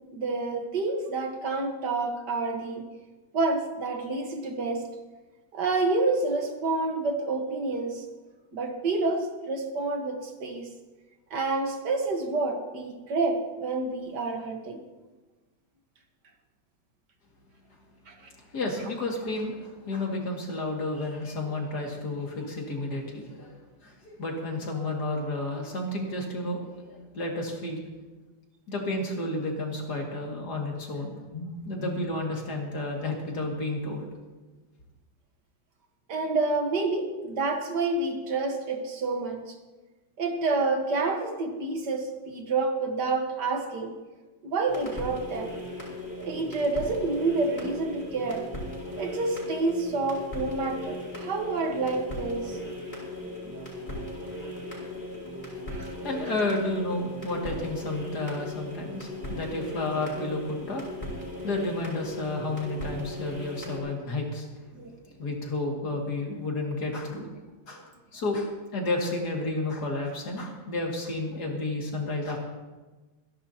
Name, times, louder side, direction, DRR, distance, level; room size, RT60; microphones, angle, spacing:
voice 1, 0.1-2.9 3.3-4.9 5.5-8.1 8.5-10.7 11.3-14.8 18.1-18.2 36.1-39.6 40.2-44.0 44.4-45.5 46.2-48.5 48.9-52.6 53.4-53.7 55.7-55.9 64.7-65.0 67.8-67.9, right 3 dB, 55° right, 3 dB, 1.9 m, -28 dB
voice 2, 18.5-23.6 23.8-27.8 28.7-34.1 56.0-60.8 61.4-64.5 65.2-67.3 67.7-67.8 68.1-72.4, left 2 dB, 45° left, 0 dB, 2.8 m, -31 dB
sound 1, 44.7-63.8, left 1 dB, 20° left, 5.3 m, -38 dB
26.0 x 11.0 x 2.9 m, 1.2 s
omnidirectional pair, 2.4 m